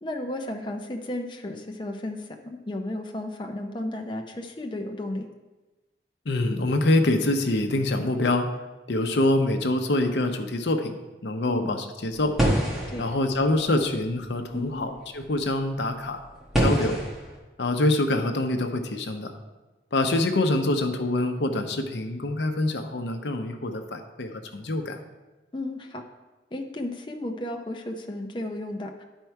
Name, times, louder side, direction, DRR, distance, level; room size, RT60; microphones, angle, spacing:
voice 1, 0.0-5.3 11.5-11.7 12.9-13.0 14.5-15.0 25.5-26.0 26.5-29.0, left 1 dB, 25° left, 2 dB, 0.5 m, -33 dB
voice 2, 6.3-8.5 8.9-11.0 11.2-12.3 13.0-16.2 16.6-17.0 17.6-19.3 19.9-25.0, left 2 dB, 75° left, 6 dB, 0.7 m, -25 dB
sound 1, 12.1-14.3 15.0-15.1 16.2-17.4, equal, ahead, 1.3 m, -26 dB
10.5 x 4.5 x 4.5 m, 1.1 s
head